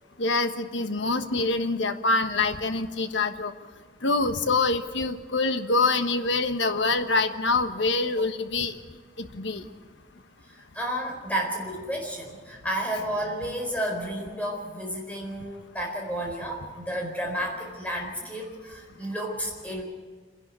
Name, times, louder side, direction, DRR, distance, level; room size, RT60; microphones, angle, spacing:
voice 1, 0.2-3.5 4.0-8.7 9.2-9.6, left 3 dB, 80° left, 8 dB, 1.3 m, -25 dB
voice 2, 10.5-19.8, equal, 10° left, 0 dB, 4.3 m, -32 dB
27.5 x 11.0 x 8.3 m, 1.5 s
head